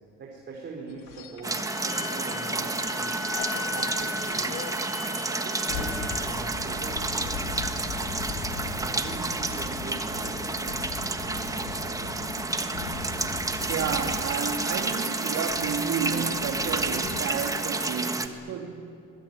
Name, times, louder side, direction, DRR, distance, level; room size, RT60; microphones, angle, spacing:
voice 1, 0.2-3.2 3.6-4.6 5.0-8.2 8.8-10.9 11.2-12.3, right 3 dB, 30° right, 4.5 m, -42 dB
sound 1, 0.9-2.9 3.2-17.2, left 6 dB, 90° left, 2.7 m, -39 dB
sound 2, 1.4-18.3, right 3 dB, 10° right, 1.3 m, -30 dB
Wind instrument woodwind instrument, 1.6-6.4, left 4 dB, 35° left, 3.2 m, -38 dB
voice 2, 13.7-18.8, right 7 dB, 55° right, 2.9 m, -31 dB
24.0 x 21.5 x 9.3 m
cardioid pair, 140°, 32 cm